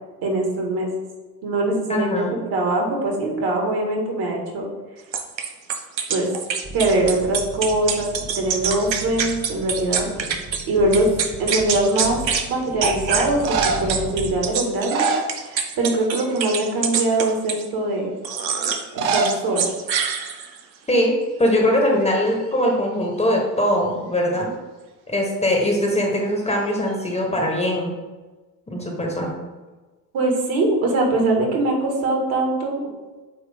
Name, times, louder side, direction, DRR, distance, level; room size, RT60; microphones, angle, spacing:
voice 1, 0.2-0.9 1.4-4.7 6.1-6.3 6.7-8.1 8.4-10.3 10.7-11.1 11.4-12.2 12.5-18.1 18.9-19.7 30.1-32.9, right 2 dB, 45° right, 0 dB, 1.9 m, -22 dB
voice 2, 1.9-2.3 20.9-21.1 21.4-24.5 25.1-28.0 28.7-29.3, left 1 dB, 15° left, 0 dB, 1.3 m, -21 dB
sound 1, 5.1-10.6 10.9-12.5 12.8-17.7 18.2-18.8 19.1-20.6, right 6 dB, 90° right, 0.8 m, -25 dB
sound 2, 6.6-14.4, right 1 dB, 15° right, 0.6 m, -36 dB
sound 3, 11.9-12.3 13.2-14.0 14.7-15.9 16.2-16.6 17.1-17.2 18.8-19.4 19.7-19.8 20.0-20.1 20.8-21.0 21.3-22.5 26.5-27.1, right 4 dB, 60° right, 1.0 m, -26 dB
8.8 x 3.0 x 3.6 m, 1.2 s
hypercardioid pair, 75°, 49 cm